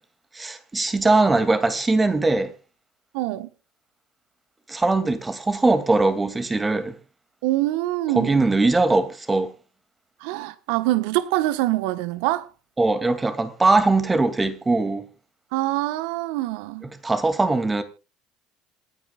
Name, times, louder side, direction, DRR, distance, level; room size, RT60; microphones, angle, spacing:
voice 1, 0.3-2.5 4.7-6.9 8.1-9.5 12.8-15.1 17.0-17.8, right 3 dB, 20° right, 2.4 m, -21 dB
voice 2, 3.1-3.5 7.4-8.5 10.2-12.5 15.5-16.9, right 17 dB, 70° right, 1.1 m, -24 dB
27.5 x 9.6 x 2.4 m
hypercardioid pair, 65°, 0 cm